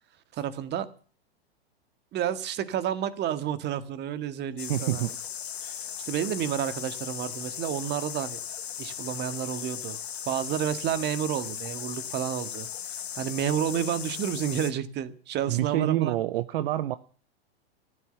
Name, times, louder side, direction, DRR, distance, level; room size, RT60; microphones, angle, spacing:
voice 1, 0.3-0.9 2.1-5.1 5.6-8.4 8.8-10.0 10.3-12.7 13.2-16.2, right 10 dB, 35° right, 1.8 m, -30 dB
sound 1, 4.6-14.7, left 9 dB, 85° left, 1.3 m, -37 dB
voice 2, 4.7-5.1 15.5-17.0, right 13 dB, 65° right, 0.9 m, -27 dB
14.5 x 12.5 x 6.8 m
hypercardioid pair, 110°, 31 cm